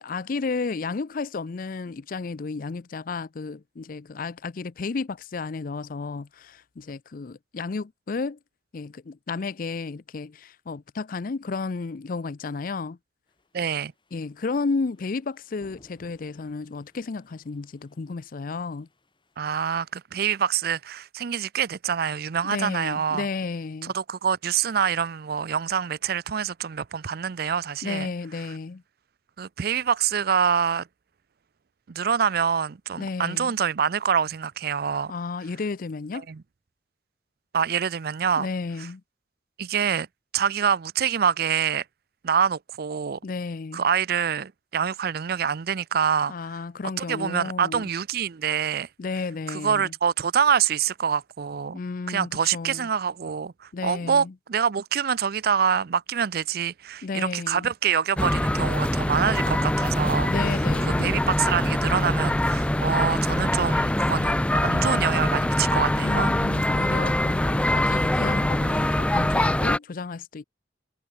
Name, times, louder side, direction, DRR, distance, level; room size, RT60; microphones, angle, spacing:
voice 1, 0.0-8.4 8.7-13.0 14.1-18.9 22.4-23.9 27.8-28.8 33.0-33.5 35.1-36.3 38.4-39.0 43.2-43.8 46.3-47.9 49.0-49.9 51.7-52.9 53.7-54.3 57.0-57.7 60.3-61.2 66.0-70.4, left 4 dB, 50° left, 0.5 m, -32 dB
sound 1, 13.3-19.9, left 1 dB, 30° left, 6.3 m, -61 dB
voice 2, 13.5-13.9 19.4-23.3 23.8-28.1 29.4-30.9 31.9-35.1 36.1-36.4 37.5-38.5 38.8-38.9 39.6-40.1 40.3-41.8 42.2-43.2 43.7-46.6 47.0-48.9 49.5-51.8 52.1-66.3, right 7 dB, 60° right, 0.5 m, -26 dB
sound 2, 58.2-69.8, left 1 dB, 5° left, 0.5 m, -23 dB
head